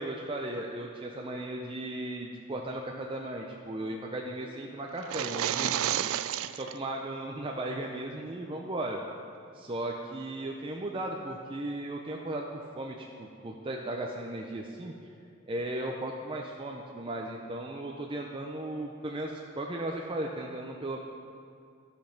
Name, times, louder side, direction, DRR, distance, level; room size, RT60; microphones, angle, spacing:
voice 1, 0.0-6.1 6.5-9.0 9.5-14.9 15.5-21.0, right 1 dB, 25° right, 0 dB, 0.5 m, -36 dB
sound 1, 5.0-6.8, right 11 dB, 75° right, 0.3 m, -31 dB
13.0 x 5.3 x 5.8 m, 2.4 s
head